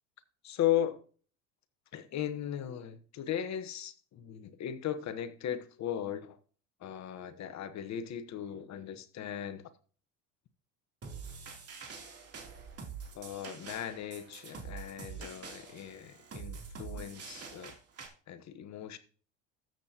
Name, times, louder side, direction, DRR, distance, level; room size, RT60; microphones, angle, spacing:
voice 1, 0.4-1.0 1.9-6.4 6.8-9.7 13.1-17.7 18.3-19.0, left 10 dB, 45° left, 1.2 m, -37 dB
sound 1, 11.0-18.1, right 5 dB, 40° right, 3.2 m, -45 dB
13.5 x 7.6 x 2.9 m
hypercardioid pair, 80°, 37 cm